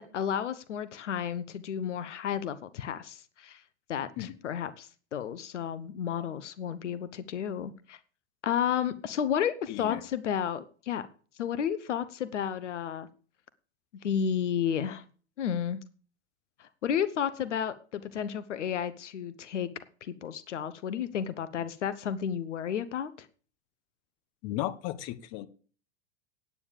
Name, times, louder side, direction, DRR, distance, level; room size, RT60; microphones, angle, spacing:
voice 1, 0.0-3.6 3.9-8.0 8.4-11.1 11.4-13.1 14.0-15.0 15.4-15.8 16.6-19.7 20.0-23.3, left 8 dB, 85° left, 14 dB, 1.1 m, -32 dB
voice 2, 9.7-10.0 24.4-25.5, left 14 dB, 45° left, 15 dB, 1.3 m, -35 dB
9.7 x 9.1 x 6.7 m, 0.41 s
hypercardioid pair, 110°, 35 cm